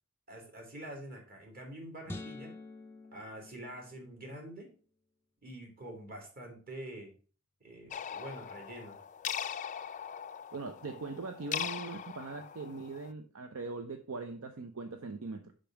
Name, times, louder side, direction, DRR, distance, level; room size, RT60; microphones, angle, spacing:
voice 1, 0.3-2.5 3.1-4.7 5.4-7.1 7.6-9.0, right 1 dB, 45° right, 2.7 m, -46 dB
sound 1, 2.1-4.4, left 2 dB, 10° left, 0.7 m, -47 dB
sound 2, 7.9-13.1, left 9 dB, 35° left, 0.4 m, -40 dB
voice 2, 10.5-15.5, right 3 dB, 70° right, 0.6 m, -41 dB
5.3 x 5.1 x 5.8 m
head